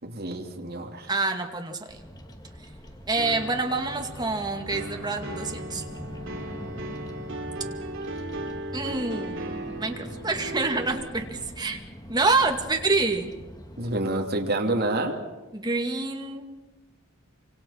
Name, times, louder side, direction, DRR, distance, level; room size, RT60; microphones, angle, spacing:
voice 1, 0.0-1.1 13.8-15.2, right 2 dB, 50° right, 1 dB, 3.0 m, -28 dB
voice 2, 1.1-2.0 3.1-5.8 8.7-9.5 9.8-11.8 12.1-13.3 15.5-16.5, right 3 dB, 20° right, 3 dB, 2.4 m, -27 dB
Bird vocalization bird call bird song, 1.9-13.9, equal, 20° left, 2.3 m, -42 dB
sound 1, 3.2-11.4, right 1 dB, 65° right, 2.8 m, -37 dB
27.5 x 26.0 x 5.9 m, 1.1 s
head